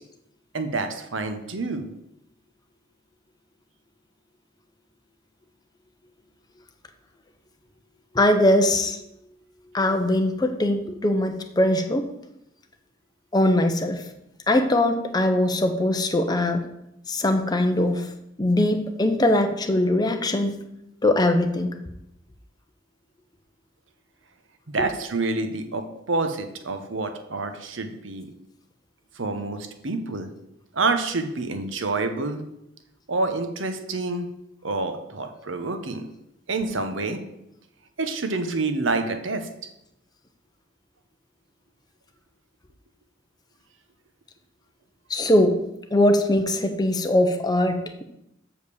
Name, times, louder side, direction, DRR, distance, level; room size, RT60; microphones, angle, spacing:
voice 1, 0.5-1.9 24.7-28.3 29.2-30.3 30.7-32.4 33.1-34.3 34.6-36.1 36.5-37.2 38.0-39.5, right 3 dB, 70° right, 7 dB, 0.9 m, -27 dB
voice 2, 8.1-9.0 9.7-12.1 13.3-14.0 14.5-16.6 17.1-18.1 18.4-20.6 21.0-21.7 45.1-45.6 45.9-48.0, left 1 dB, 20° left, 5 dB, 0.7 m, -21 dB
6.4 x 5.1 x 6.9 m, 0.83 s
head